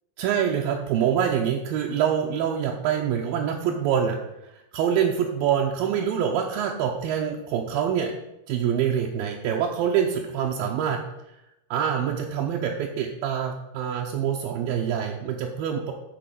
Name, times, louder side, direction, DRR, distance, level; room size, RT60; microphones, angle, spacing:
voice 1, 0.2-4.2 4.5-8.1 8.5-11.0 11.7-15.9, right 8 dB, 75° right, -1 dB, 2.4 m, -25 dB
11.0 x 4.3 x 7.7 m, 0.89 s
omnidirectional pair, 4.6 m